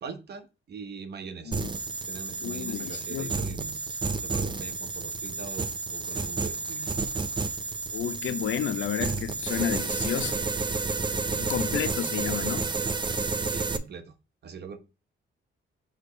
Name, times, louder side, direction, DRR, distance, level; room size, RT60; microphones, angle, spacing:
voice 1, 0.0-1.7 2.1-6.9 11.2-12.1 13.4-14.1 14.4-14.8, right 6 dB, 50° right, 0.9 m, -42 dB
sound 1, 1.5-13.8, right 4 dB, 20° right, 0.5 m, -31 dB
voice 2, 2.4-3.3 7.9-10.4 11.4-12.7, left 10 dB, 70° left, 0.5 m, -31 dB
6.4 x 3.3 x 5.0 m
cardioid pair, 135°, 21 cm